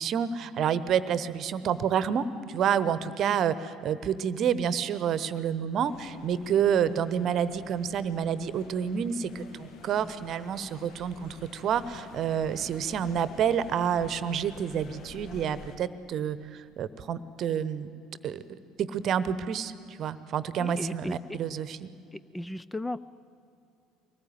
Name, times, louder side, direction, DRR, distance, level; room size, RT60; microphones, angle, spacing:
voice 1, 0.0-17.9 18.2-18.4 18.8-21.9, right 8 dB, 45° right, 16 dB, 1.0 m, -29 dB
sound 1, 5.8-15.8, left 4 dB, 50° left, 1.7 m, -48 dB
voice 2, 20.6-21.4 22.1-23.0, left 1 dB, 10° left, 18 dB, 0.5 m, -35 dB
23.5 x 19.0 x 9.3 m, 2.7 s
figure-of-eight pair, 60°, 0 cm